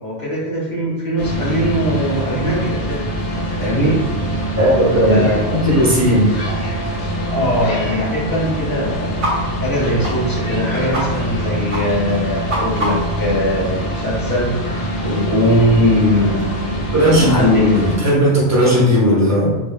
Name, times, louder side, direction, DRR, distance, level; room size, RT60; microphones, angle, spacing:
voice 1, 0.0-3.0 3.6-4.1 5.1-5.4 6.5-6.6 7.3-17.9, left 1 dB, 20° left, -7 dB, 0.8 m, -20 dB
sound 1, 1.2-18.0, right 1 dB, 80° left, 0.9 m, -24 dB
voice 2, 4.6-5.2 5.6-6.3 16.9-17.4 17.7-19.6, equal, 25° right, -6 dB, 0.3 m, -15 dB
sound 2, 9.2-9.3 9.6-9.7 10.0-10.1 10.5-10.6 10.9-11.0 11.3-11.4 11.7-11.8 12.1-13.2, equal, 55° right, 0.7 m, -24 dB
2.1 x 2.0 x 3.2 m, 1.1 s
omnidirectional pair, 1.2 m